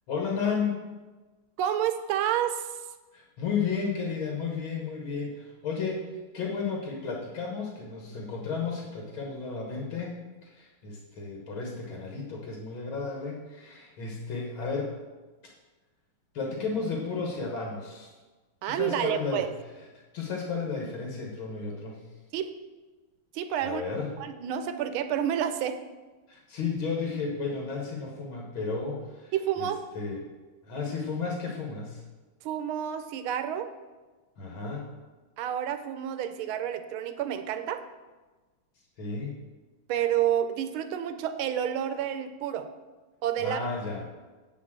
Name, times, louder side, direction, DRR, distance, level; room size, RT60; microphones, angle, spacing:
voice 1, 0.1-0.8 3.1-6.1 6.3-14.9 16.3-18.1 18.7-19.5 20.1-22.1 23.6-24.1 26.3-29.7 29.9-30.2 30.6-32.0 34.4-34.9 39.0-39.4 43.4-44.1, left 5 dB, 70° left, -1 dB, 2.1 m, -33 dB
voice 2, 1.6-2.7 18.6-19.5 22.3-22.5 23.3-23.8 24.2-25.8 29.3-29.8 32.4-33.7 35.4-37.8 39.9-42.7 43.2-43.6, right 10 dB, 75° right, 9 dB, 1.5 m, -29 dB
8.9 x 5.2 x 7.4 m, 1.2 s
omnidirectional pair, 2.4 m